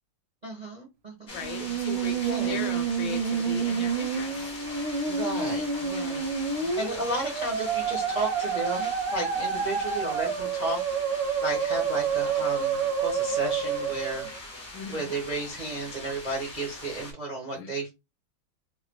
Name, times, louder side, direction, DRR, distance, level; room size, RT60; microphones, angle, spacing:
voice 1, 0.4-1.4 2.2-2.6 5.1-6.3 6.8-10.8 11.4-14.2 14.9-17.9, right 2 dB, 65° right, -2 dB, 0.4 m, -33 dB
voice 2, 1.3-4.6 14.7-15.1 17.5-17.7, left 7 dB, 75° left, 6 dB, 1.2 m, -38 dB
sound 1, 1.3-17.1, left 1 dB, 50° left, 0.5 m, -42 dB
Musical instrument, 1.4-14.4, right 6 dB, 80° right, 1.5 m, -29 dB
3.7 x 2.0 x 3.0 m, 0.24 s
omnidirectional pair, 2.3 m